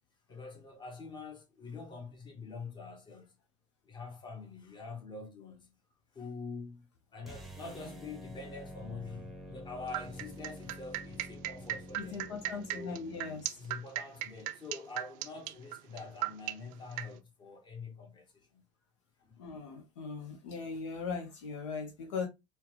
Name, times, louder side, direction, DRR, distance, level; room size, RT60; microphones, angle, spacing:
voice 1, 0.3-3.4 3.8-5.8 6.1-6.9 7.1-12.3 12.7-13.0 13.6-18.7 19.2-19.4, left 4 dB, 30° left, 1.4 m, -45 dB
sound 1, 7.2-13.5, equal, ahead, 0.9 m, -48 dB
sound 2, 9.9-17.1, right 15 dB, 60° right, 0.4 m, -36 dB
voice 2, 12.0-13.6 19.4-22.3, left 5 dB, 80° left, 0.8 m, -39 dB
4.5 x 2.3 x 2.9 m
hypercardioid pair, 80°, 15 cm